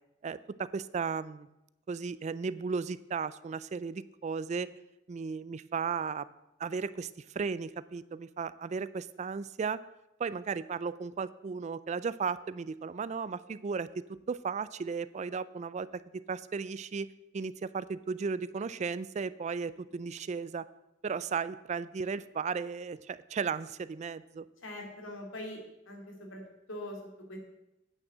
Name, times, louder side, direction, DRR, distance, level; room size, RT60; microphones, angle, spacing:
voice 1, 0.2-1.5 1.9-4.7 5.1-6.3 6.6-9.8 10.2-17.1 17.3-20.7 21.0-24.5, right 5 dB, 35° right, 16 dB, 0.3 m, -35 dB
voice 2, 24.6-25.6 25.9-26.4 26.7-27.0 27.3-27.4, left 1 dB, 80° left, 1 dB, 2.5 m, -42 dB
8.9 x 6.2 x 7.7 m, 0.92 s
head